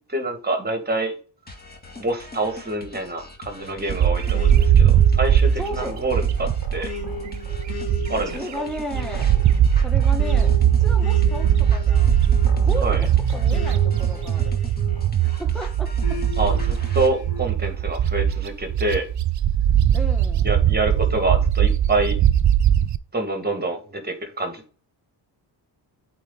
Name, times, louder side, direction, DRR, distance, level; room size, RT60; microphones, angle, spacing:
voice 1, 0.1-1.2 2.0-6.9 8.1-8.4 12.8-13.0 16.4-19.1 20.4-22.2 23.1-24.6, right 2 dB, 20° right, 2.1 m, -26 dB
sound 1, 1.5-17.1, left 3 dB, 20° left, 2.0 m, -42 dB
Bird, 3.9-8.4 8.8-23.0, right 9 dB, 45° right, 0.5 m, -20 dB
sound 2, 4.3-15.4 16.0-17.5, left 5 dB, 60° left, 2.8 m, -37 dB
voice 2, 5.6-6.0 8.3-9.3 9.8-12.1 12.6-14.5 15.2-16.2 19.9-20.5, equal, ahead, 1.6 m, -34 dB
8.4 x 4.0 x 4.0 m
cardioid pair, 120°, 43 cm